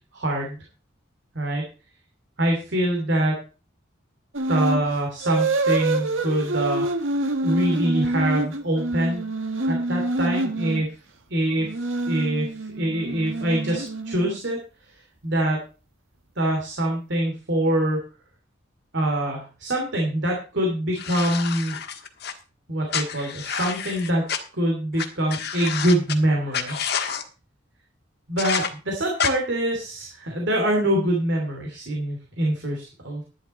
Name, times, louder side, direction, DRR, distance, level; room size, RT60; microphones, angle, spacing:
voice 1, 0.1-0.6 1.3-1.7 2.4-3.4 4.5-6.8 7.4-9.2 9.7-11.0 11.3-14.6 14.9-15.6 16.4-18.0 18.9-21.8 22.7-24.2 24.5-26.8 28.3-33.2, right 1 dB, 60° right, 1 dB, 2.8 m, -24 dB
sound 1, 4.3-4.8 5.2-10.9 11.6-14.5, right 2 dB, 75° right, 1.7 m, -26 dB
sound 2, 20.9-22.3 22.9-24.4 25.0-25.1 25.3-26.1 26.5-27.2 28.4-28.7 29.2-29.3, left 7 dB, 55° left, 1.5 m, -28 dB
11.0 x 10.5 x 4.3 m, 0.34 s
head